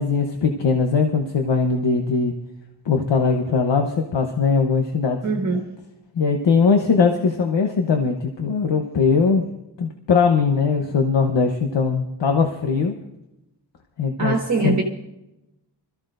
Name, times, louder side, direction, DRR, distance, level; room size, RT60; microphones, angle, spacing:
voice 1, 0.0-2.3 2.9-5.2 6.2-9.4 9.8-12.9 14.0-14.3 14.6-14.8, left 5 dB, 90° left, 3 dB, 1.1 m, -20 dB
voice 2, 5.2-5.6 14.2-14.8, right 3 dB, 40° right, -1 dB, 1.6 m, -22 dB
25.5 x 14.0 x 2.6 m, 0.92 s
wide cardioid pair, 135°, 42 cm